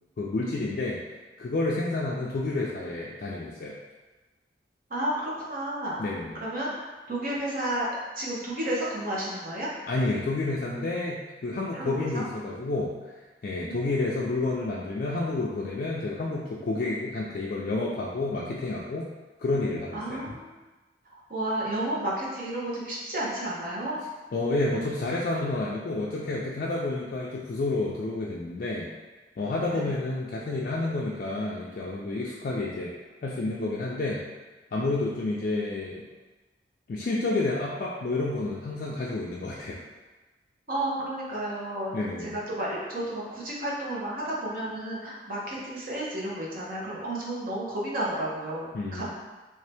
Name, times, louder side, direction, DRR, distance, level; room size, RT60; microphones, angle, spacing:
voice 1, 0.2-1.0 1.4-3.8 6.0-6.4 9.9-13.1 13.4-19.1 19.4-20.2 24.3-28.9 29.4-32.9 33.2-34.2 34.7-36.0 36.9-39.8 41.9-42.3 48.7-49.1, left 2 dB, 50° left, -4 dB, 0.3 m, -30 dB
voice 2, 4.9-6.0 6.4-6.7 7.1-9.7 11.7-12.2 13.6-14.1 19.9-20.5 21.1-24.0 29.7-30.0 40.7-41.9 42.2-48.7 48.9-49.1, right 1 dB, 55° right, -5 dB, 0.9 m, -32 dB
3.2 x 2.7 x 3.3 m, 1.2 s
head